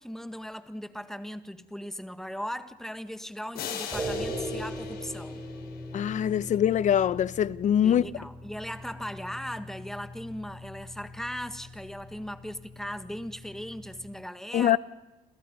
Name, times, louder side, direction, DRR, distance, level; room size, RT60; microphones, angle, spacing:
voice 1, 0.0-5.4 7.8-14.8, equal, ahead, 1.7 m, -38 dB
sound 1, 3.5-6.4, left 8 dB, 70° left, 5.0 m, -40 dB
sound 2, 3.9-14.1, equal, 20° right, 7.5 m, -40 dB
voice 2, 5.9-8.1 14.5-14.8, left 10 dB, 50° left, 0.9 m, -23 dB
29.0 x 28.0 x 5.4 m
cardioid pair, 115°, 17 cm